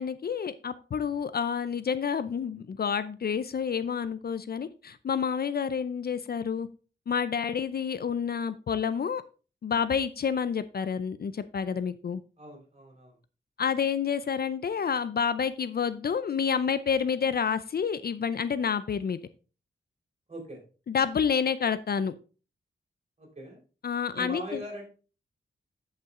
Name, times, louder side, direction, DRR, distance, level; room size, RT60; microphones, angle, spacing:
voice 1, 0.0-6.7 7.1-9.2 9.6-12.2 13.6-19.2 20.9-22.1 23.8-24.6, left 7 dB, 55° left, 14 dB, 0.5 m, -29 dB
voice 2, 12.4-13.1 20.3-20.6 23.2-23.6 24.2-24.9, equal, 35° right, 1 dB, 3.8 m, -40 dB
10.0 x 5.6 x 3.7 m, 0.35 s
wide cardioid pair, 115°, 19 cm